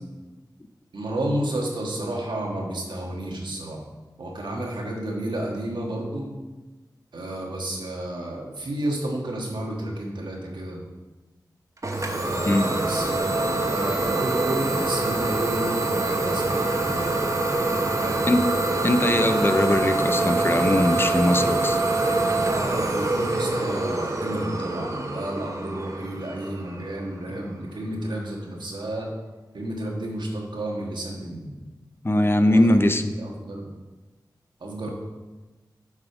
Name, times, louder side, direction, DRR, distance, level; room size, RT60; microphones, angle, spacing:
voice 1, 0.9-3.8 4.2-6.3 7.1-10.8 12.1-17.2 18.0-18.3 22.9-29.1 29.5-31.6 32.4-32.8 33.1-33.7 34.6-34.9, right 1 dB, 90° right, -1 dB, 1.4 m, -31 dB
Idling / Domestic sounds home sounds, 11.8-27.4, right 2 dB, 45° right, 1.0 m, -25 dB
voice 2, 18.8-21.8 32.0-33.0, left 1 dB, 30° left, 8 dB, 0.5 m, -21 dB
7.3 x 5.0 x 4.9 m, 1.2 s
wide cardioid pair, 55°, 8 cm